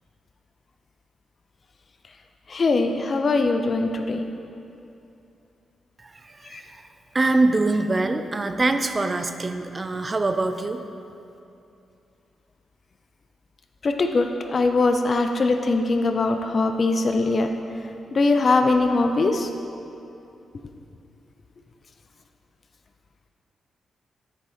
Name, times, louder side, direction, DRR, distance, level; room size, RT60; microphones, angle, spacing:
voice 1, 2.5-4.3 6.5-6.6 13.8-17.5 18.1-19.5, left 3 dB, 50° left, 6 dB, 0.4 m, -21 dB
voice 2, 6.2-6.8 7.1-10.8, right 2 dB, 35° right, 8 dB, 0.4 m, -24 dB
7.1 x 3.7 x 4.2 m, 2.7 s
supercardioid pair, 55°, 0 cm